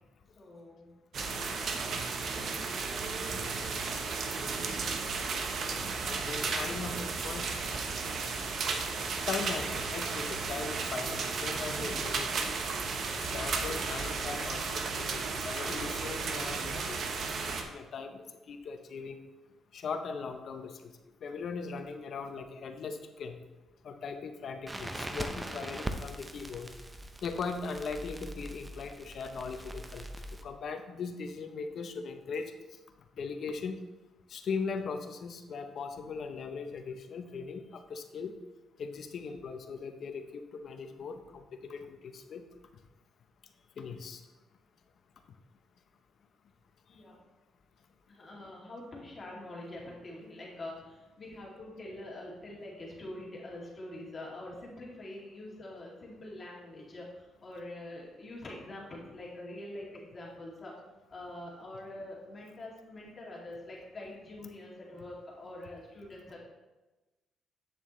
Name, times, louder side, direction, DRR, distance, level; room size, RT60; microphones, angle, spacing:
voice 1, 0.3-0.9 1.7-1.9 46.9-47.2 48.1-60.7 61.1-66.4, left 1 dB, 35° left, -4 dB, 2.6 m, -45 dB
sound 1, 1.1-17.6, right 4 dB, 60° right, 1.0 m, -34 dB
voice 2, 3.5-3.8 6.0-7.5 9.0-12.6 13.2-19.2 19.7-20.9 21.2-23.4 23.8-26.7 27.2-30.1 30.4-32.8 33.2-33.8 34.3-38.4 38.8-42.4 43.8-44.2 46.9-47.0, left 5 dB, 60° left, 7 dB, 0.8 m, -39 dB
Crackle, 24.7-30.4, right 1 dB, 15° right, 0.7 m, -41 dB
8.5 x 7.2 x 3.2 m, 1.1 s
cardioid pair, 90°, 0 cm